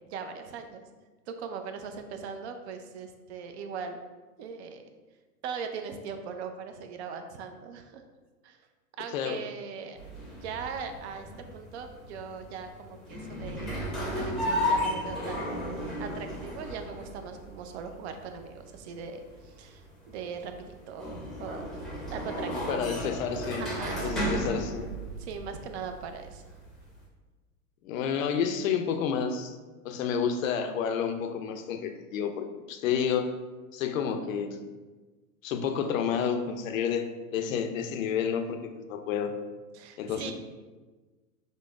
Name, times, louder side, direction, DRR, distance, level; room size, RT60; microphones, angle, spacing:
voice 1, 0.1-0.8 1.3-4.0 4.4-4.8 5.4-8.0 8.4-8.6 9.0-10.0 10.4-21.1 21.4-21.7 22.1-22.8 23.6-24.2 25.2-26.5 39.7-40.3, right 6 dB, 50° right, 7 dB, 0.5 m, -40 dB
sound 1, 10.0-27.0, equal, ahead, 0.6 m, -35 dB
voice 2, 22.7-23.7 24.0-24.9 27.8-29.6 29.8-33.4 33.7-34.6 35.4-37.1 37.3-39.3 40.0-40.3, left 7 dB, 65° left, 6 dB, 0.5 m, -30 dB
5.1 x 2.0 x 2.3 m, 1.3 s
hypercardioid pair, 115°, 44 cm